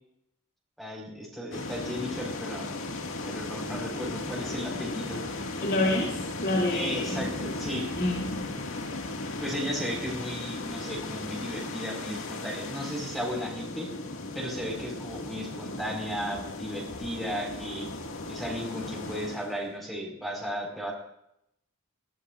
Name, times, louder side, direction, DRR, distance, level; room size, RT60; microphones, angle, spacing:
voice 1, 0.8-2.7 3.2-5.3 6.7-7.9 9.4-13.9 14.3-17.9 18.3-20.9, equal, ahead, -1 dB, 4.8 m, -35 dB
sound 1, 1.5-19.7, left 2 dB, 80° left, 2.0 m, -36 dB
voice 2, 5.6-7.2 8.0-8.3, left 2 dB, 50° left, -3 dB, 2.8 m, -28 dB
22.0 x 17.0 x 2.5 m, 0.78 s
head